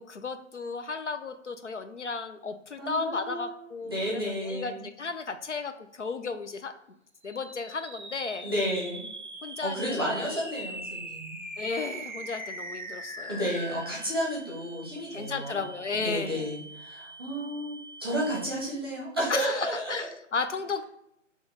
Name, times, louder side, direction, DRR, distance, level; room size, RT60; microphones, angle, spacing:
voice 1, 0.0-5.7 6.0-6.7 7.2-8.5 9.4-10.3 11.6-13.4 15.1-16.4 19.3-20.9, left 4 dB, 65° left, 8 dB, 0.5 m, -34 dB
voice 2, 2.8-3.6 3.8-4.8 8.4-9.0 9.6-11.4 13.3-15.7 16.0-20.1, equal, 20° right, -5 dB, 0.8 m, -32 dB
sound 1, 7.2-18.8, right 1 dB, 40° right, 0.4 m, -42 dB
4.3 x 3.0 x 3.5 m, 0.78 s
figure-of-eight pair, 155°, 38 cm